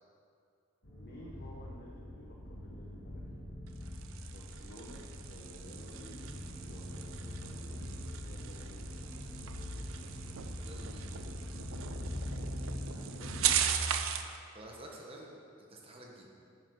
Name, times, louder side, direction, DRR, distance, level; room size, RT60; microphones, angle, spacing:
sound 1, 0.8-13.6, left 1 dB, 65° left, 1.6 m, -43 dB
voice 1, 1.0-3.2 4.3-6.3 6.6-9.1 12.8-13.7, equal, 50° left, -4 dB, 1.1 m, -53 dB
sound 2, 3.7-14.4, right 10 dB, 75° right, 0.5 m, -38 dB
voice 2, 10.6-11.0 13.9-15.3 15.6-16.3, right 1 dB, 25° right, -2 dB, 1.2 m, -51 dB
9.3 x 6.3 x 5.4 m, 2.4 s
head